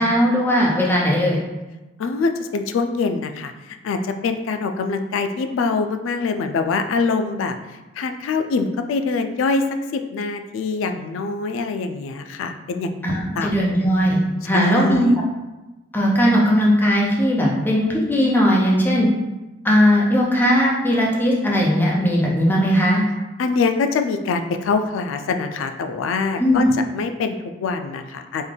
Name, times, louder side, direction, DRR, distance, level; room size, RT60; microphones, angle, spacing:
voice 1, 0.0-1.4 13.0-15.1 15.9-19.1 19.6-23.0 26.4-26.6, equal, 10° left, -4 dB, 0.6 m, -18 dB
voice 2, 2.0-7.6 8.0-9.7 9.9-13.5 14.5-15.2 23.4-26.7 26.9-28.5, left 4 dB, 85° left, 7 dB, 0.3 m, -24 dB
3.6 x 2.2 x 3.3 m, 1.1 s
head